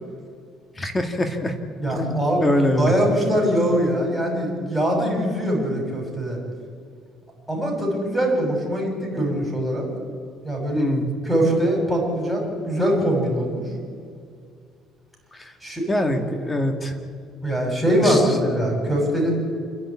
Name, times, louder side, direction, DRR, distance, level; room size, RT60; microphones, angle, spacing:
voice 1, 0.8-1.5 1.9-2.9 10.7-11.1 15.3-15.5 15.9-17.0 18.0-18.2, left 1 dB, 20° left, 6 dB, 2.1 m, -23 dB
voice 2, 1.8-2.5 2.8-6.4 7.5-9.9 10.4-10.9 11.2-13.6 15.6-15.9 17.4-19.3, equal, ahead, 0 dB, 6.5 m, -22 dB
28.5 x 11.0 x 8.7 m, 2.2 s
cardioid pair, 110°, 0 cm